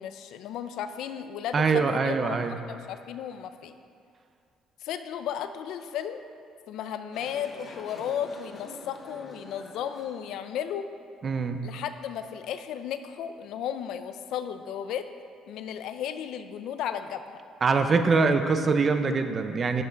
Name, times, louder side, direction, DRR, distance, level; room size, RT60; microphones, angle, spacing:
voice 1, 0.0-3.8 4.8-6.2 6.7-10.9 11.6-15.1 15.5-17.4, left 9 dB, 75° left, 10 dB, 0.5 m, -34 dB
voice 2, 1.5-2.6 11.2-11.6 17.6-19.8, right 4 dB, 30° right, 7 dB, 0.6 m, -24 dB
sound 1, 7.1-10.4, left 2 dB, 35° left, 1.1 m, -46 dB
12.0 x 5.7 x 5.1 m, 2.4 s
cardioid pair, 145°, 0 cm